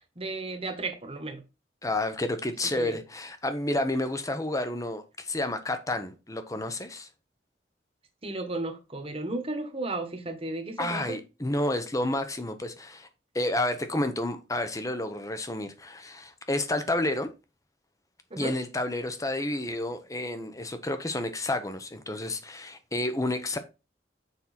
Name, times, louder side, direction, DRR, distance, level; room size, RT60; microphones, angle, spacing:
voice 1, 0.0-1.4 2.7-3.0 8.2-11.2 18.3-18.5, right 2 dB, 30° right, 1.5 m, -34 dB
voice 2, 1.8-7.1 10.8-13.1 13.3-17.3 18.4-23.6, left 1 dB, 20° left, 0.9 m, -30 dB
7.1 x 5.4 x 4.3 m
head